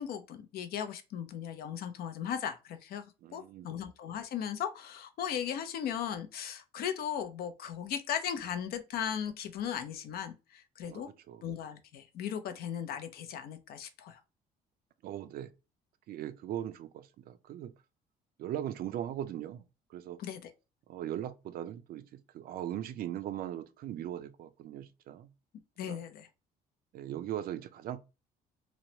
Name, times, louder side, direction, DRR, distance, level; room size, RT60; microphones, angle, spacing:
voice 1, 0.0-3.0 3.3-11.1 11.4-14.2 20.2-20.5 25.8-26.3, left 9 dB, 65° left, 0.5 m, -37 dB
voice 2, 3.2-3.8 10.9-11.5 15.0-15.5 16.1-17.7 18.4-19.6 19.9-20.2 20.9-25.3 25.8-26.0 26.9-28.0, right 11 dB, 60° right, 0.4 m, -39 dB
3.0 x 2.0 x 2.7 m
cardioid pair, 110°, 17 cm